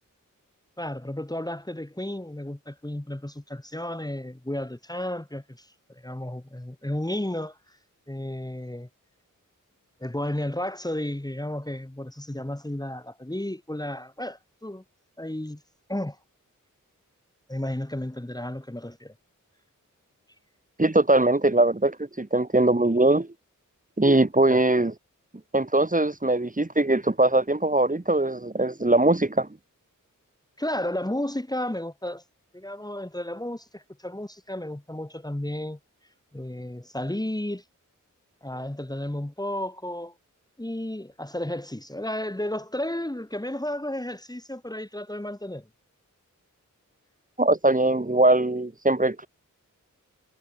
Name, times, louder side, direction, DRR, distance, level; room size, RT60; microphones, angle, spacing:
voice 1, 0.8-5.7 6.0-7.6 8.1-8.9 10.0-14.8 15.2-15.6 15.9-16.2 17.5-19.1 24.5-24.6 30.6-32.2 32.5-35.8 36.3-37.6 38.4-40.1 40.6-45.6, left 1 dB, 10° left, 2.9 m, -33 dB
voice 2, 20.8-23.3 24.0-24.9 25.5-29.5 47.4-49.3, right 2 dB, 25° right, 3.6 m, -21 dB
wide cardioid pair, 85°, 32 cm